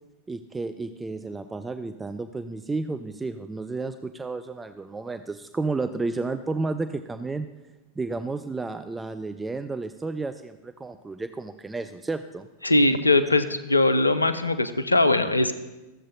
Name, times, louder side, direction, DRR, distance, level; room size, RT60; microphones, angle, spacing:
voice 1, 0.3-7.5 8.0-12.5, right 3 dB, 10° right, 9 dB, 0.3 m, -32 dB
voice 2, 12.6-15.5, left 2 dB, 80° left, 12 dB, 0.5 m, -21 dB
14.5 x 7.4 x 2.7 m, 1.1 s
figure-of-eight pair, 90°, 0 cm